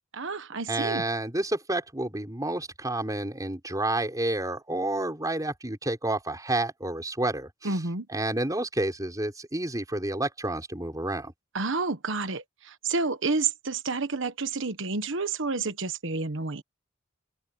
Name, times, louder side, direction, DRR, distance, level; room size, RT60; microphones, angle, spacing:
voice 1, 0.2-1.0 7.6-8.1 11.5-16.6, right 4 dB, 65° right, 1.3 m, -30 dB
voice 2, 0.7-7.5 8.1-11.3, right 2 dB, 15° right, 4.6 m, -29 dB
head